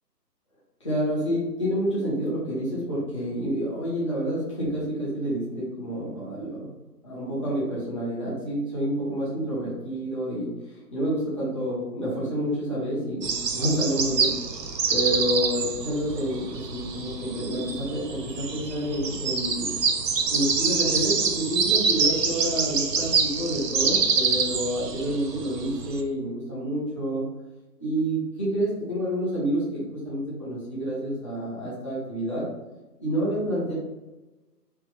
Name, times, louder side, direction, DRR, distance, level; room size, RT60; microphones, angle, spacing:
voice 1, 0.8-6.7 7.0-10.5 10.9-14.3 14.9-19.7 20.3-27.2 27.8-32.4 33.0-33.7, equal, 20° left, -9 dB, 1.0 m, -28 dB
sound 1, 13.2-26.0, right 5 dB, 75° right, 0.7 m, -26 dB
3.3 x 2.8 x 3.1 m, 1.1 s
figure-of-eight pair, 155°, 50 cm